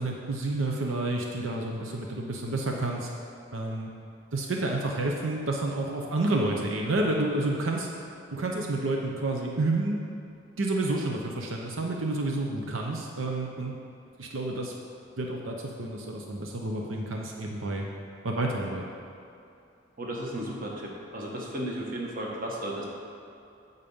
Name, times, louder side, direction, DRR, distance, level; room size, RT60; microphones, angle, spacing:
voice 1, 0.0-3.1 3.5-3.9 4.3-7.9 8.3-10.0 10.6-13.7 14.2-14.7 15.2-17.9 18.2-18.9, right 2 dB, 90° right, 0 dB, 0.8 m, -29 dB
voice 2, 20.0-22.8, right 1 dB, 45° right, -2 dB, 1.3 m, -34 dB
8.7 x 4.1 x 7.1 m, 2.6 s
head